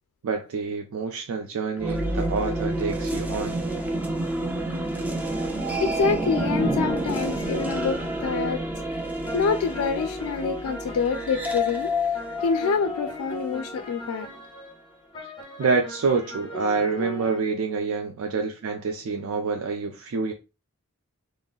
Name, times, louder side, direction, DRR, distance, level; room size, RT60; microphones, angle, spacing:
voice 1, 0.2-3.6 15.2-15.3 15.6-20.3, right 4 dB, 80° right, 0.4 m, -27 dB
sound 1, 1.8-13.6, equal, 5° right, 0.4 m, -29 dB
voice 2, 5.8-8.6 9.3-11.9 12.4-14.3, left 5 dB, 90° left, 0.3 m, -26 dB
sound 2, 6.0-17.4, left 1 dB, 20° left, 0.8 m, -39 dB
3.7 x 2.0 x 2.3 m
head